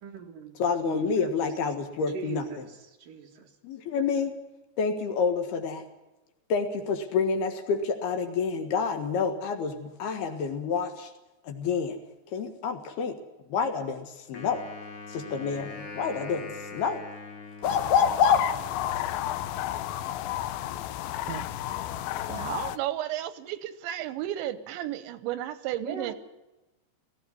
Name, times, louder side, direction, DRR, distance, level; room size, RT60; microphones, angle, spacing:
voice 1, 0.0-0.6 0.8-1.1 2.1-2.7 3.0-3.5 25.8-26.1, right 6 dB, 55° right, 2 dB, 3.3 m, -39 dB
voice 2, 0.6-2.5 3.6-4.3 4.8-5.8 6.5-11.1 11.4-12.0 12.3-13.2 13.5-14.7 15.1-17.1 17.6-18.4, left 6 dB, 65° left, 6 dB, 3.4 m, -28 dB
Wind instrument woodwind instrument, 14.3-18.6, left 3 dB, 35° left, 3.0 m, -42 dB
sound 1, 17.6-22.8, left 13 dB, 90° left, 3.1 m, -32 dB
voice 3, 22.3-26.1, right 12 dB, 85° right, 13 dB, 3.3 m, -33 dB
18.0 x 15.5 x 9.7 m, 1.0 s
omnidirectional pair, 5.1 m